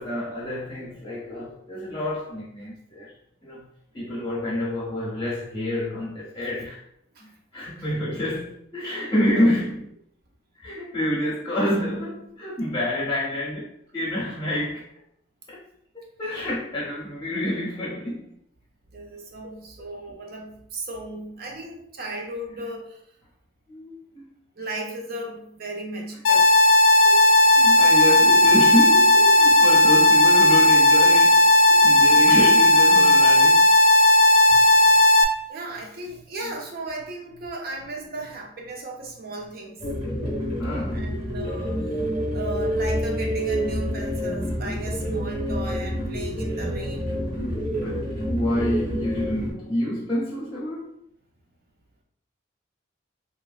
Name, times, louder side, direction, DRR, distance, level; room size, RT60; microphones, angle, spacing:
voice 1, 0.0-3.1 3.4-3.7 3.9-6.8 7.2-10.0 10.5-14.8 15.5-15.6 15.9-18.4 19.4-19.6 23.7-24.3 27.0-33.6 40.6-41.1 47.1-47.3 47.7-50.9, left 1 dB, 20° left, -7 dB, 0.6 m, -28 dB
voice 2, 18.9-23.0 24.6-26.5 32.3-32.5 34.5-34.6 34.9-35.0 35.5-39.9 40.9-41.9 42.3-47.2, right 2 dB, 50° right, 1 dB, 0.5 m, -36 dB
sound 1, 26.2-35.2, left 1 dB, 65° left, 0.3 m, -15 dB
sound 2, 39.8-49.5, equal, 35° right, 1.1 m, -28 dB
2.9 x 2.5 x 2.3 m, 0.70 s
head